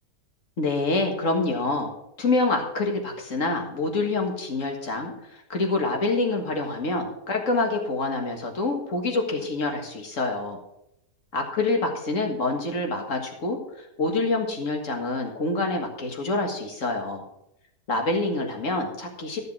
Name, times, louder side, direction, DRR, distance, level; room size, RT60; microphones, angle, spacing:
voice 1, 0.6-1.9 2.2-10.6 11.3-17.2 17.9-19.5, left 2 dB, 50° left, 3 dB, 2.1 m, -26 dB
13.0 x 6.6 x 6.1 m, 0.82 s
omnidirectional pair, 1.8 m